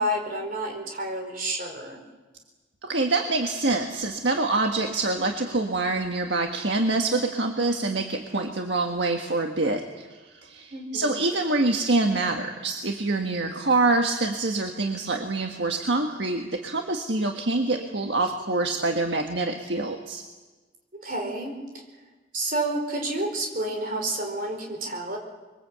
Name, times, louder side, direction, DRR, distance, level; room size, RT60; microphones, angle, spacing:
voice 1, 0.0-2.0 8.3-8.5 10.7-11.2 21.0-21.6 22.3-25.2, right 1 dB, 45° right, 2 dB, 4.8 m, -29 dB
voice 2, 2.8-20.2, right 2 dB, 65° right, 3 dB, 1.6 m, -26 dB
25.5 x 23.0 x 8.1 m, 1.3 s
head